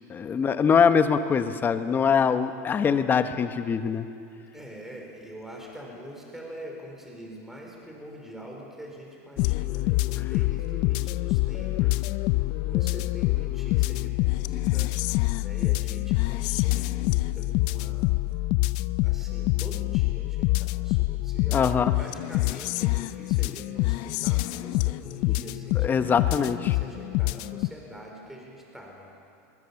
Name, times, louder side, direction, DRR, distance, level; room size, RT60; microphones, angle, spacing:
voice 1, 0.1-4.1 11.8-11.9 21.5-21.9 23.4-23.5 25.7-26.8, left 6 dB, 25° left, 9 dB, 1.1 m, -23 dB
voice 2, 4.5-12.4 12.6-14.9 15.4-18.1 19.0-29.1, right 1 dB, 5° right, -1 dB, 4.7 m, -44 dB
sound 1, 9.4-27.7, left 20 dB, 55° left, 0.5 m, -26 dB
22.0 x 20.5 x 7.2 m, 2.6 s
supercardioid pair, 130°, 8 cm